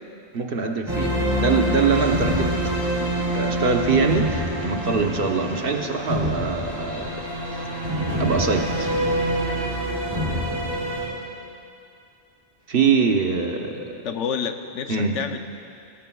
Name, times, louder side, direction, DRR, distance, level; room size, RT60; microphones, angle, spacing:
voice 1, 0.3-2.6 3.3-9.0 12.7-14.0 14.9-15.2, right 4 dB, 55° right, 3 dB, 1.0 m, -24 dB
sound 1, 0.9-11.1, equal, 20° right, 3.5 m, -25 dB
voice 2, 13.8-15.4, left 7 dB, 85° left, 7 dB, 1.1 m, -29 dB
18.5 x 18.0 x 2.3 m, 2.6 s
omnidirectional pair, 1.2 m